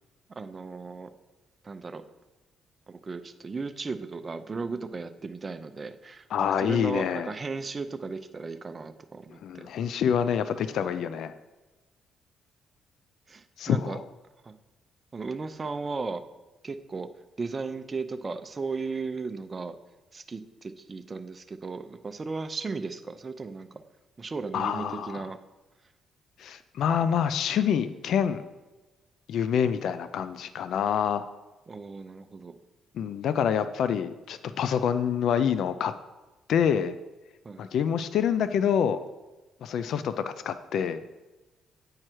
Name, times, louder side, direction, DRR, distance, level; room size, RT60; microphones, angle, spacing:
voice 1, 0.4-1.1 1.6-2.0 2.9-9.7 13.3-14.0 14.4-14.5 15.1-16.2 16.6-17.1 17.4-19.8 20.1-23.8 24.2-25.4 31.7-32.5 37.4-37.6, right 4 dB, 30° right, 9 dB, 0.5 m, -36 dB
voice 2, 6.3-7.3 9.4-11.3 13.6-14.0 24.5-25.3 26.4-28.4 29.3-31.2 32.9-35.9 36.5-37.0 37.6-39.0 39.6-41.0, left 8 dB, 70° left, 12 dB, 0.4 m, -26 dB
8.9 x 4.7 x 4.5 m, 1.1 s
cardioid pair, 90°, 0 cm